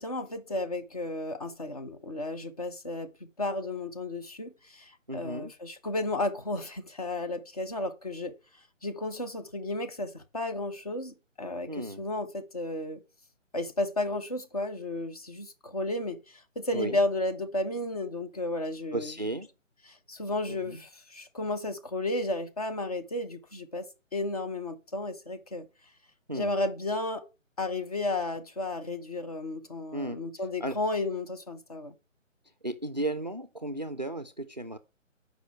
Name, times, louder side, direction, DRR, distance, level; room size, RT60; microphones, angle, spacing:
voice 1, 0.0-3.1 3.4-8.3 8.8-13.0 13.5-19.1 19.9-23.9 24.1-25.7 26.3-27.2 27.6-31.9, left 2 dB, 30° left, 0.7 m, -33 dB
voice 2, 5.1-5.5 11.7-12.1 16.7-17.0 18.9-19.5 20.5-20.8 26.3-26.5 29.9-30.2 30.6-30.8 32.6-34.8, right 1 dB, 35° right, 0.4 m, -34 dB
8.1 x 5.2 x 4.3 m
figure-of-eight pair, 155°, 39 cm